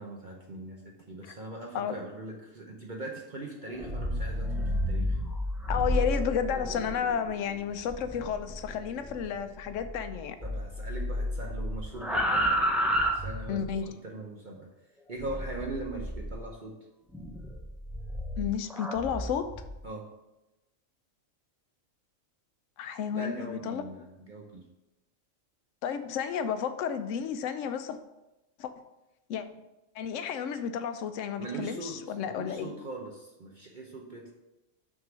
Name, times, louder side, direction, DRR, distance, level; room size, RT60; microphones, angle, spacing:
voice 1, 0.0-5.2 10.4-12.7 13.0-14.7 15.1-16.8 19.8-20.1 23.1-24.7 31.4-34.3, right 2 dB, 45° right, -1 dB, 0.8 m, -41 dB
sound 1, 3.7-10.1 10.4-13.8 15.2-16.5 17.1-19.7, equal, ahead, 0.5 m, -32 dB
voice 2, 5.7-10.4 13.5-13.8 18.4-19.5 22.8-23.8 25.8-28.0 28.6-28.7 29.3-29.4 29.9-32.7, left 8 dB, 75° left, 10 dB, 0.9 m, -32 dB
6.2 x 3.8 x 6.1 m, 0.98 s
omnidirectional pair, 1.4 m